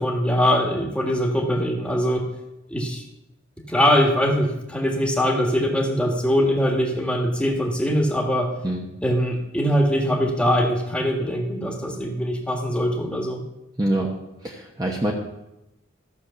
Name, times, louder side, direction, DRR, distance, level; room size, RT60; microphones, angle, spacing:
voice 1, 0.0-2.3 2.7-3.0 3.7-8.5 9.0-13.4, equal, 5° left, 1 dB, 1.6 m, -22 dB
voice 2, 13.8-14.1 14.4-15.1, right 1 dB, 20° right, -1 dB, 1.1 m, -24 dB
14.0 x 6.7 x 6.9 m, 0.93 s
head